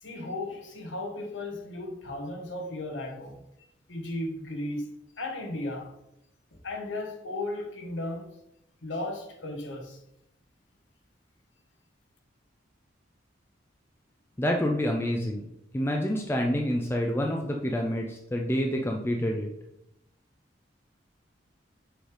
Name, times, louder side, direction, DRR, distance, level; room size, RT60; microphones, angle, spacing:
voice 1, 0.0-3.4 3.9-5.9 6.6-8.3 8.8-10.0, left 2 dB, 80° left, 1.2 m, -35 dB
voice 2, 14.4-15.5 15.7-19.5, equal, 10° left, 0.4 m, -27 dB
6.3 x 3.4 x 4.7 m
head